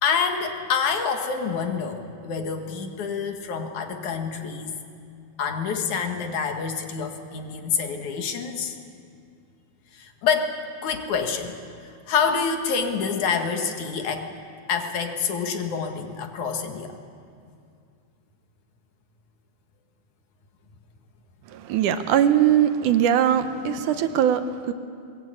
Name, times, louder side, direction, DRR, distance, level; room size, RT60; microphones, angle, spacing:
voice 1, 0.0-4.7 5.4-8.8 9.9-11.6 11.8-14.3 14.7-16.9, left 6 dB, 70° left, 5 dB, 3.1 m, -27 dB
voice 2, 21.5-24.7, right 10 dB, 75° right, 10 dB, 2.4 m, -21 dB
21.5 x 21.0 x 9.0 m, 2.4 s
omnidirectional pair, 3.6 m